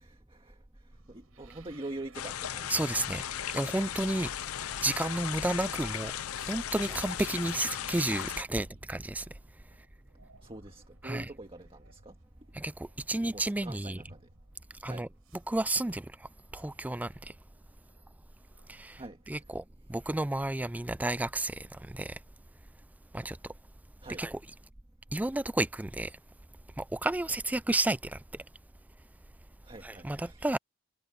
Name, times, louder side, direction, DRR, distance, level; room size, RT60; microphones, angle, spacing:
voice 1, 0.0-3.1 8.5-8.7 10.4-12.2 13.3-14.3 14.8-15.1 19.0-19.4 24.0-24.2 29.6-30.4, right 2 dB, 25° right, 1.8 m, -45 dB
sound 1, 0.9-19.7, right 1 dB, 75° right, 6.1 m, -59 dB
sound 2, 2.1-8.4, left 10 dB, 80° left, 0.6 m, -37 dB
voice 2, 2.7-3.2 3.5-4.5 4.8-6.1 6.4-9.3 11.0-11.3 12.5-14.0 14.8-15.1 15.5-16.1 16.5-17.3 18.7-19.0 19.3-19.6 19.9-22.2 23.1-23.4 24.2-24.4 25.1-26.1 26.8-28.2 29.8-30.6, right 2 dB, 5° right, 0.4 m, -31 dB
head